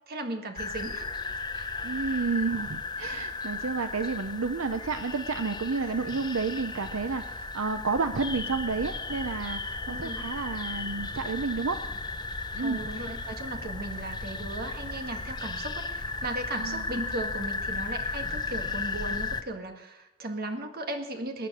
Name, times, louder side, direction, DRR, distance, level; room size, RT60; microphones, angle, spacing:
voice 1, 0.1-1.1 1.5-1.7 9.9-10.3 12.6-21.5, right 2 dB, 45° right, 5 dB, 1.7 m, -36 dB
sound 1, 0.6-19.4, left 3 dB, 20° left, 0.7 m, -35 dB
voice 2, 1.8-11.8 12.5-13.1 16.6-16.8, right 4 dB, 80° right, 9 dB, 0.7 m, -31 dB
21.0 x 9.0 x 6.3 m, 0.94 s
head